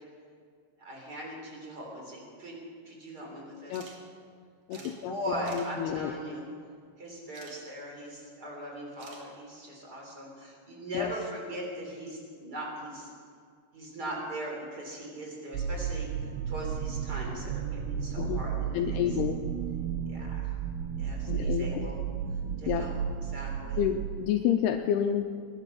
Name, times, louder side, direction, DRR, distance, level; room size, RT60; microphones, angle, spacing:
voice 1, 0.8-2.6 2.8-3.9 4.7-6.4 7.0-13.1 13.7-16.1 16.5-19.0 20.1-20.5 21.0-22.0 22.6-22.9 23.3-23.8, equal, 25° right, -1 dB, 3.3 m, -39 dB
sound 1, 3.7-4.0 4.3-4.4 4.7-4.9 5.4-5.7 7.3-7.6 9.0-9.2, right 4 dB, 50° right, 2.4 m, -49 dB
voice 2, 4.7-6.1 10.9-11.1 18.2-18.4 18.7-19.4 21.3-21.9 22.6-22.8 23.8-25.3, left 9 dB, 85° left, 5 dB, 2.5 m, -29 dB
sound 2, 15.5-24.1, right 7 dB, 90° right, 3.0 m, -33 dB
21.0 x 11.0 x 5.9 m, 2.2 s
omnidirectional pair, 5.1 m